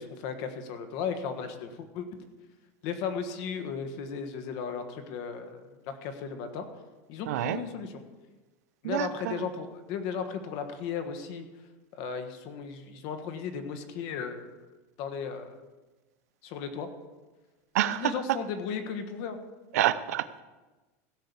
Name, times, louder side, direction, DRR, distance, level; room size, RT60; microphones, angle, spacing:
voice 1, 0.0-2.1 2.8-6.7 7.1-8.0 8.8-11.4 12.0-14.5 15.0-15.6 16.4-16.9 17.8-19.4, left 6 dB, 45° left, 8 dB, 1.4 m, -35 dB
voice 2, 7.3-7.6 8.8-9.4 17.7-18.4 19.7-20.4, right 13 dB, 80° right, 13 dB, 0.7 m, -28 dB
16.5 x 5.6 x 6.9 m, 1.2 s
supercardioid pair, 165°, 8 cm